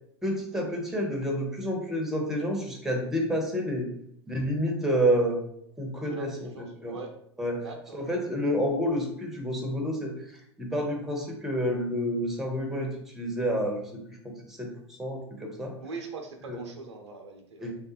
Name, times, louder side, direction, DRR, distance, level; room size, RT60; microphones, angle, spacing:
voice 1, 0.2-3.9 4.3-5.4 5.8-6.5 6.8-7.0 7.4-7.6 7.9-10.1 10.6-15.7 16.5-16.6 17.6-17.7, equal, 5° right, 1 dB, 0.7 m, -29 dB
voice 2, 6.0-7.1 7.6-8.0 15.8-17.7, right 4 dB, 75° right, 4 dB, 0.5 m, -42 dB
3.3 x 2.3 x 2.7 m, 0.70 s
figure-of-eight pair, 90°, 15 cm